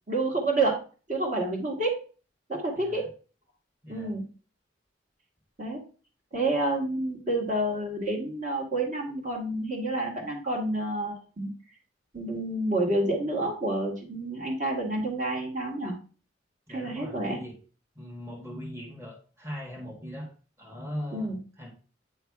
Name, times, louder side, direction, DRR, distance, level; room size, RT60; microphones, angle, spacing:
voice 1, 0.1-0.8 1.1-2.0 2.5-3.1 3.9-4.2 5.6-5.8 6.3-11.5 12.1-15.9 16.7-17.4 21.1-21.4, right 2 dB, 40° right, -1 dB, 2.0 m, -29 dB
voice 2, 2.7-3.1 3.8-4.1 16.7-17.5 17.9-20.3 20.6-21.3 21.6-21.7, equal, 15° right, -2 dB, 1.6 m, -39 dB
9.1 x 3.3 x 4.7 m, 0.37 s
head